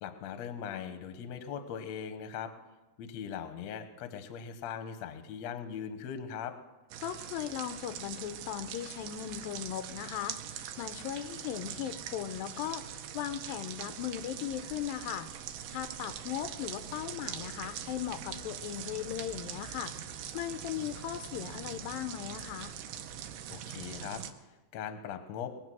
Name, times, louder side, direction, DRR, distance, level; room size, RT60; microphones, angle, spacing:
voice 1, 0.0-2.5 3.0-6.5 23.5-24.2 24.7-25.5, left 8 dB, 65° left, 8 dB, 2.0 m, -40 dB
sound 1, 6.9-24.3, right 9 dB, 80° right, 2.5 m, -43 dB
voice 2, 7.0-15.3 15.7-19.9 20.3-22.7, left 11 dB, 85° left, 10 dB, 2.5 m, -38 dB
21.5 x 8.0 x 6.2 m, 1.1 s
omnidirectional pair, 4.0 m